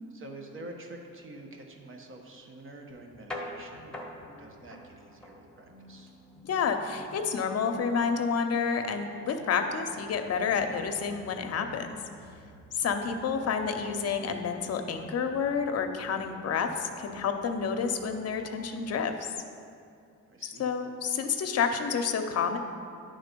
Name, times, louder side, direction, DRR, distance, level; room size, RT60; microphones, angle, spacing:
voice 1, 0.1-6.1 13.0-13.2 20.3-20.7, right 2 dB, 45° right, 2 dB, 1.1 m, -47 dB
sound 1, 2.9-19.0, left 1 dB, ahead, 1.1 m, -49 dB
voice 2, 6.4-11.9 12.7-19.1 20.6-22.6, left 6 dB, 55° left, 6 dB, 0.7 m, -29 dB
10.0 x 3.7 x 5.2 m, 2.4 s
cardioid pair, 90°, 30 cm